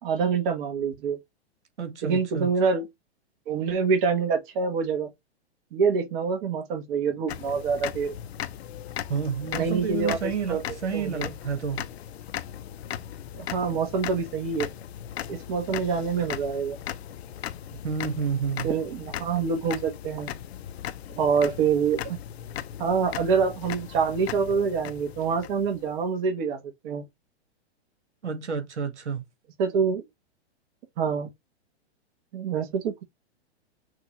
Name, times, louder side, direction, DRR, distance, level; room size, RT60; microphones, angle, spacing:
voice 1, 0.0-1.2 2.0-2.9 3.5-5.1 5.7-8.1 9.5-10.6 10.9-11.2 13.3-14.7 15.3-16.8 18.6-20.3 21.2-22.2 22.8-26.6 26.8-27.0 29.6-30.0 31.0-31.3 32.3-33.0, right 5 dB, 50° right, 1.4 m, -26 dB
voice 2, 1.8-2.5 9.1-11.8 17.8-18.7 28.2-29.2, right 6 dB, 85° right, 1.8 m, -30 dB
sound 1, 7.3-26.0, left 11 dB, 70° left, 0.8 m, -38 dB
6.0 x 2.6 x 3.0 m
hypercardioid pair, 125°, 33 cm